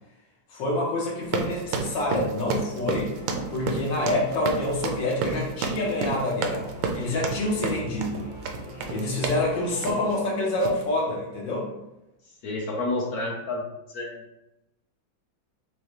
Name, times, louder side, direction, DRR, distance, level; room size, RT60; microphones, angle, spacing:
voice 1, 0.5-3.1 3.5-8.3 8.9-11.7, left 2 dB, 70° left, -3 dB, 1.8 m, -27 dB
sound 1, 1.2-9.5 9.8-10.1 10.6-10.8, right 5 dB, 75° right, 1.1 m, -30 dB
Singing / Musical instrument, 3.1-10.1, left 1 dB, 25° left, 1.0 m, -41 dB
voice 2, 12.4-14.2, left 2 dB, 55° left, -3 dB, 1.2 m, -30 dB
6.5 x 2.2 x 3.1 m, 0.92 s
omnidirectional pair, 2.1 m